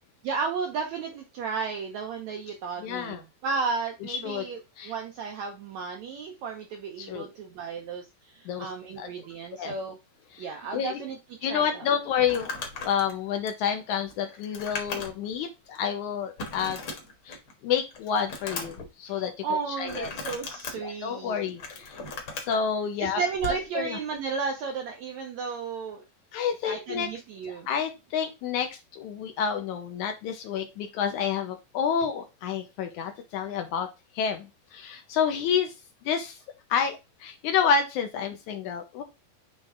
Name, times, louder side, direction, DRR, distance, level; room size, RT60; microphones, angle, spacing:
voice 1, 0.2-10.0 10.4-11.9 19.0-21.5 23.0-26.0 26.6-27.7, right 5 dB, 80° right, 3 dB, 1.6 m, -33 dB
voice 2, 2.8-3.2 4.0-4.5 4.8-4.9 7.0-7.3 8.5-8.7 9.0-9.1 9.6-9.7 10.3-10.5 10.7-11.0 11.4-12.5 12.8-16.8 17.3-17.4 17.6-20.1 20.7-22.0 22.4-23.2 23.8-24.0 26.3-27.1 27.7-33.9 34.1-35.7 36.1-36.4 36.7-39.0, left 7 dB, 80° left, 6 dB, 1.8 m, -29 dB
Crumpling crinkling, 12.2-15.4 15.7-15.8 16.4-17.5 17.9-18.9 19.8-20.7 21.4-22.6 23.4-23.6, left 3 dB, 50° left, 1.5 m, -37 dB
8.1 x 3.3 x 3.6 m, 0.26 s
omnidirectional pair, 4.3 m